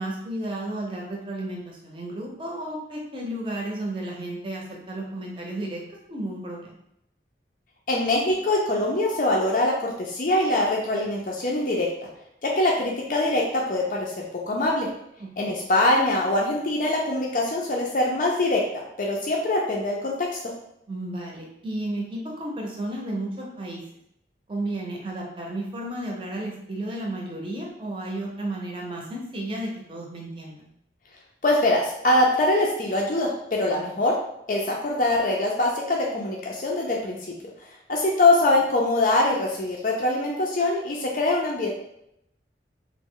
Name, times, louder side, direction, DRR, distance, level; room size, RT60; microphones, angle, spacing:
voice 1, 0.0-5.8 6.1-6.7 15.2-15.6 20.9-23.8 24.5-30.7, right 1 dB, 30° right, -2 dB, 0.6 m, -33 dB
voice 2, 7.9-11.9 12.4-14.9 15.4-20.4 31.4-34.1 34.5-37.2 37.9-41.7, left 2 dB, 45° left, -2 dB, 0.4 m, -23 dB
3.0 x 2.1 x 3.6 m, 0.78 s
head